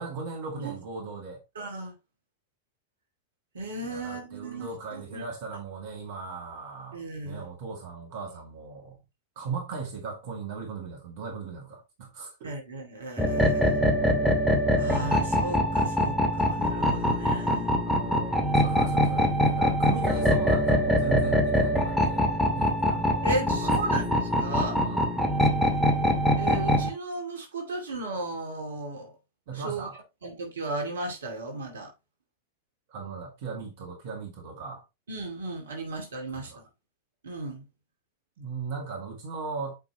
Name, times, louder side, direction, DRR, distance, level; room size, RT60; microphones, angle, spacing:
voice 1, 0.0-1.4 3.8-9.0 9.4-12.5 17.9-24.1 24.7-25.1 29.5-30.0 32.9-34.8 36.3-36.6 38.4-39.8, right 5 dB, 50° right, 2.1 m, -38 dB
voice 2, 1.6-1.9 3.5-5.2 6.9-7.4 12.4-13.9 14.8-17.7 23.2-24.8 26.4-29.1 29.5-29.9 30.2-31.9 35.1-36.5 37.2-37.6, right 2 dB, 65° right, 2.4 m, -35 dB
sound 1, 13.2-26.9, equal, 5° left, 2.0 m, -24 dB
8.4 x 5.2 x 2.9 m
figure-of-eight pair, 90°, 0 cm